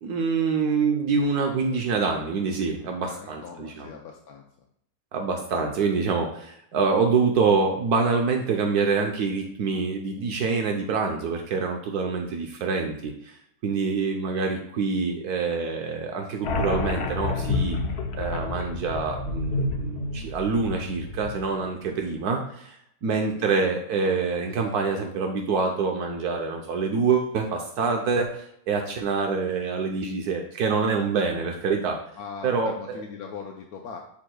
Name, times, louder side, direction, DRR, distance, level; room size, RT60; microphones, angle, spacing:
voice 1, 0.0-3.9 5.1-17.8 18.1-22.8 23.0-32.0 32.4-33.0, right 4 dB, 75° right, 3 dB, 1.3 m, -26 dB
voice 2, 3.0-4.4 18.4-18.6 23.3-23.5 32.2-34.0, left 6 dB, 70° left, 1 dB, 1.2 m, -40 dB
sound 1, 16.4-21.7, left 3 dB, 55° left, 0.8 m, -29 dB
11.0 x 4.8 x 2.3 m, 0.71 s
omnidirectional pair, 1.7 m